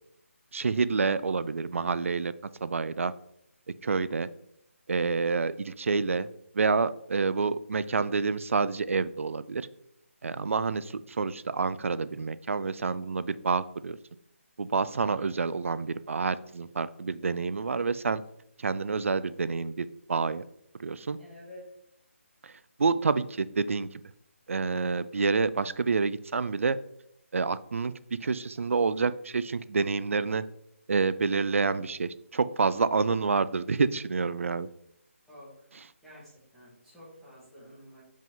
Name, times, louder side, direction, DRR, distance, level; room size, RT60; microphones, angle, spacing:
voice 1, 0.5-2.3 2.6-3.1 3.8-4.3 4.9-6.3 6.5-9.7 10.2-14.0 14.6-18.2 18.6-20.4 20.8-21.2 22.4-22.5 22.8-23.9 24.5-26.8 27.3-30.4 30.9-34.7, right 4 dB, 70° right, 16 dB, 0.4 m, -28 dB
voice 2, 21.2-21.7 35.3-35.7 36.0-38.0, left 1 dB, ahead, -12 dB, 1.7 m, -50 dB
5.5 x 5.1 x 3.8 m, 0.74 s
hypercardioid pair, 170°, 7 cm